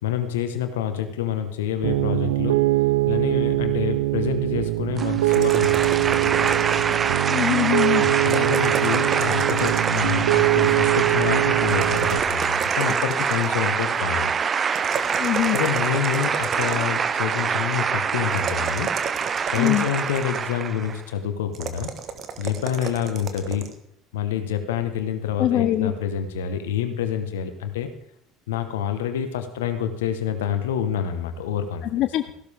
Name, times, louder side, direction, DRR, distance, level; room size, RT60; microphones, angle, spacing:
voice 1, 0.0-2.6 3.1-6.6 8.0-14.3 15.5-18.9 19.5-21.9 22.4-23.7 24.1-27.9 28.5-31.8, left 9 dB, 85° left, 8 dB, 1.3 m, -27 dB
Piano, 1.8-12.2, right 18 dB, 85° right, 0.5 m, -23 dB
sound 1, 5.0-21.0, right 6 dB, 35° right, 0.6 m, -25 dB
sound 2, 5.3-7.1 8.2-10.2 11.7-13.7 14.7-17.1 18.3-20.5 21.5-23.7, right 7 dB, 55° right, 1.4 m, -33 dB
voice 2, 7.3-8.0 15.2-15.6 19.6-19.9 25.4-25.9 31.9-32.3, left 13 dB, 60° left, 10 dB, 0.6 m, -22 dB
15.0 x 12.0 x 3.6 m, 0.74 s
hypercardioid pair, 70°, 0 cm